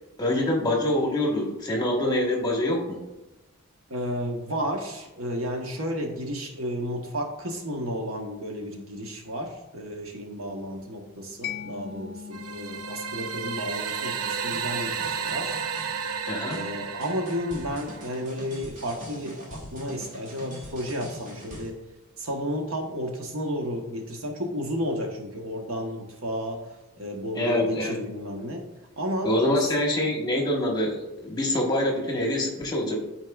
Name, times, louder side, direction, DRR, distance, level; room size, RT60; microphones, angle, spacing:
voice 1, 0.2-3.0 16.3-16.6 27.3-28.0 29.2-32.9, left 1 dB, 20° left, 0 dB, 1.2 m, -25 dB
voice 2, 3.9-15.6 16.5-21.8 22.2-26.6 27.0-28.6 29.0-29.3, equal, 65° right, 2 dB, 1.1 m, -32 dB
Mallet percussion, 11.4-18.8, left 8 dB, 45° left, 0.5 m, -43 dB
sound 1, 12.3-18.3, right 6 dB, 90° right, 0.5 m, -32 dB
sound 2, 13.9-21.7, equal, 35° right, 1.6 m, -44 dB
12.0 x 4.6 x 2.4 m, 1.0 s
head